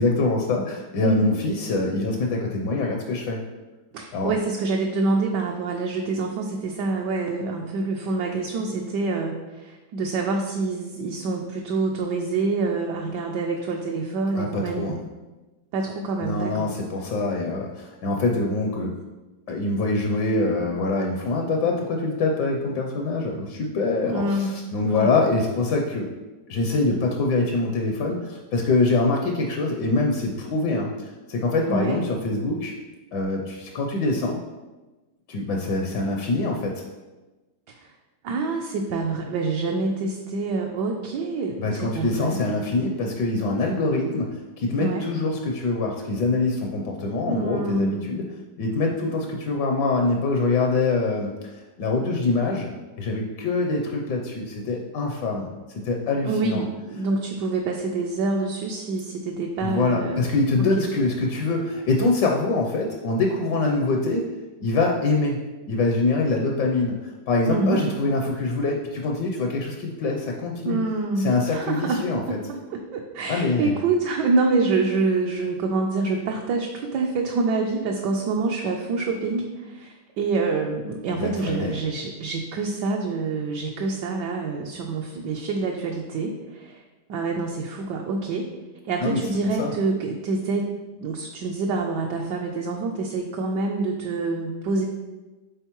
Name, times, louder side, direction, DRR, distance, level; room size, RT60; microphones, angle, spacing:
voice 1, 0.0-3.4 4.1-4.3 14.3-15.0 16.2-19.0 19.5-26.1 26.5-32.7 33.1-34.4 35.3-36.8 41.6-48.3 48.6-51.5 51.8-52.7 53.0-55.5 55.8-56.6 59.6-64.3 64.6-65.4 65.7-70.8 71.2-72.4 73.3-73.8 81.1-81.8 89.0-89.2 89.6-89.7, left 3 dB, 70° left, 1 dB, 1.2 m, -24 dB
voice 2, 1.0-1.4 3.9-15.0 15.7-16.7 24.0-24.5 24.8-25.1 31.7-32.0 37.7-37.9 38.2-42.4 44.7-45.1 47.3-48.1 56.2-60.4 60.8-60.9 67.5-67.8 70.6-86.8 87.1-88.5 88.9-90.7 91.0-94.9, right 3 dB, 70° right, 1 dB, 1.1 m, -26 dB
9.0 x 3.8 x 3.0 m, 1.2 s
omnidirectional pair, 2.1 m